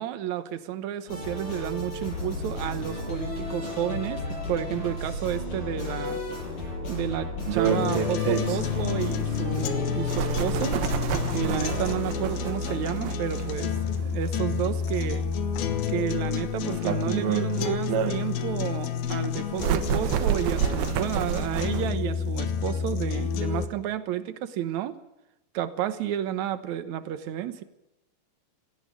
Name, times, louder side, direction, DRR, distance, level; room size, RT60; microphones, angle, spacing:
voice 1, 0.0-6.2 6.9-10.8 11.3-13.7 14.0-15.3 15.9-25.0 25.5-27.6, right 11 dB, 65° right, 11 dB, 2.1 m, -31 dB
sound 1, 1.1-11.9, left 2 dB, 60° left, 9.5 m, -33 dB
sound 2, 7.5-21.9, right 10 dB, 90° right, 3.1 m, -30 dB
sound 3, 7.7-23.7, left 7 dB, 85° left, 3.1 m, -30 dB
17.5 x 15.5 x 9.6 m, 0.89 s
omnidirectional pair, 4.2 m